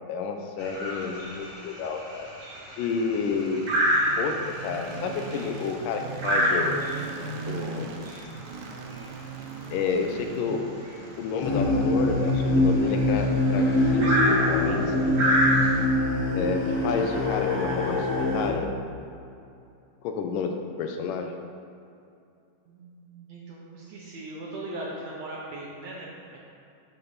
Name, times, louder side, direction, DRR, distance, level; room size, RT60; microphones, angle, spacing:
voice 1, 0.1-2.3 2.8-3.7 4.2-6.8 7.5-7.9 9.7-10.7 11.2-15.2 16.3-18.7 20.0-21.4, left 5 dB, 80° left, 4 dB, 2.2 m, -30 dB
sound 1, 0.6-15.8, equal, 35° right, 1.8 m, -29 dB
sound 2, 2.9-17.0, right 4 dB, 80° right, 2.4 m, -41 dB
sound 3, 11.4-18.5, left 2 dB, 55° left, 2.3 m, -24 dB
voice 2, 22.7-26.4, right 1 dB, 65° right, -4 dB, 1.8 m, -39 dB
11.0 x 5.6 x 4.0 m, 2.6 s
omnidirectional pair, 3.9 m